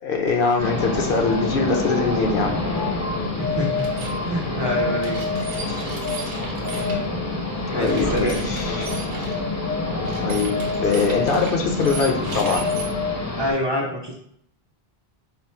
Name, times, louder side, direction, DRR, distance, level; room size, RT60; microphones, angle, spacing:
voice 1, 0.0-2.6 6.7-7.0 7.7-8.9 10.2-12.7, left 4 dB, 65° left, 2 dB, 0.8 m, -23 dB
sound 1, 0.6-13.5, left 3 dB, 20° left, 0.5 m, -26 dB
voice 2, 3.4-5.2 7.7-8.6 13.4-14.1, equal, 30° right, -2 dB, 0.5 m, -26 dB
sound 2, 3.8-4.2 5.0-7.0 7.8-9.4 10.0-12.8, right 3 dB, 55° right, 0.8 m, -36 dB
4.1 x 2.0 x 4.2 m, 0.69 s
omnidirectional pair, 1.0 m